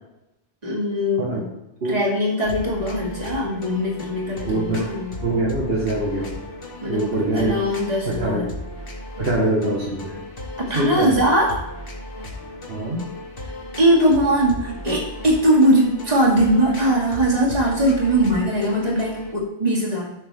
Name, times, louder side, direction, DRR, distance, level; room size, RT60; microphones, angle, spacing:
voice 1, 0.6-1.5 1.9-5.2 6.8-7.0 7.3-8.5 10.7-11.7 13.8-20.1, right 1 dB, 40° right, -4 dB, 2.6 m, -20 dB
sound 1, 2.4-19.3, left 1 dB, 60° left, 1.8 m, -36 dB
voice 2, 4.5-4.9 5.2-6.4 6.9-7.6 8.1-8.5 9.2-10.2 10.7-11.2 12.7-13.1, right 2 dB, 70° right, -3 dB, 1.8 m, -23 dB
13.0 x 6.0 x 3.5 m, 0.91 s
omnidirectional pair, 1.1 m